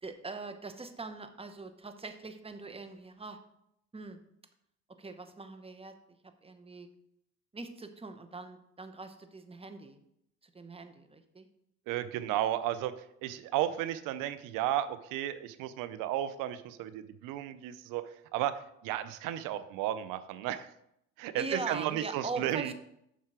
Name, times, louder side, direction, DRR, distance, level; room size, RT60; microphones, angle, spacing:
voice 1, 0.0-3.4 3.9-4.2 5.0-6.0 6.4-6.9 7.5-10.0 10.4-11.5 21.3-22.7, right 3 dB, 20° right, 9 dB, 1.0 m, -41 dB
voice 2, 11.9-12.9 13.2-18.0 18.3-20.7 21.2-22.7, right 12 dB, 90° right, 14 dB, 0.5 m, -33 dB
7.4 x 5.6 x 4.9 m, 0.76 s
supercardioid pair, 75°, 32 cm